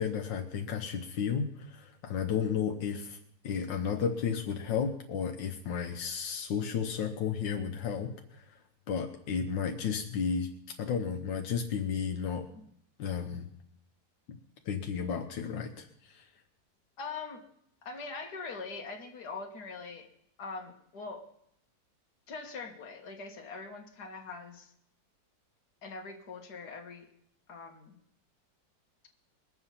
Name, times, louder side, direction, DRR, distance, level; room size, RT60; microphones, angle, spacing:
voice 1, 0.0-3.2 3.4-8.6 8.9-10.5 10.8-12.5 13.0-13.5 14.3-14.4 14.6-16.3, left 7 dB, 85° left, 3 dB, 1.7 m, -33 dB
voice 2, 17.0-17.5 17.8-20.1 20.4-21.3 22.3-24.7 25.8-27.1 27.5-28.0, left 4 dB, 60° left, 3 dB, 2.0 m, -42 dB
21.5 x 7.8 x 5.7 m, 0.73 s
omnidirectional pair, 2.0 m